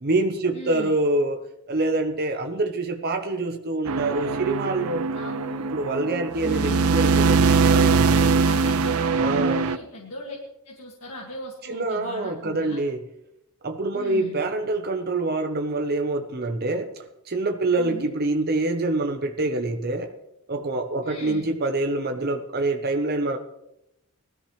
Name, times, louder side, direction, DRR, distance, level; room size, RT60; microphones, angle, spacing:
voice 1, 0.0-5.1 5.7-8.3 9.2-9.7 11.7-13.0 13.6-20.1 20.5-23.4, right 2 dB, 45° right, 6 dB, 0.8 m, -26 dB
voice 2, 0.5-1.0 5.1-5.7 6.4-7.0 8.4-10.4 10.6-12.8 13.9-14.5 17.8-18.1 21.0-21.5, left 1 dB, 70° left, -2 dB, 2.2 m, -39 dB
sound 1, 3.9-9.8, right 4 dB, 70° right, 0.5 m, -22 dB
19.0 x 13.0 x 3.2 m, 0.84 s
head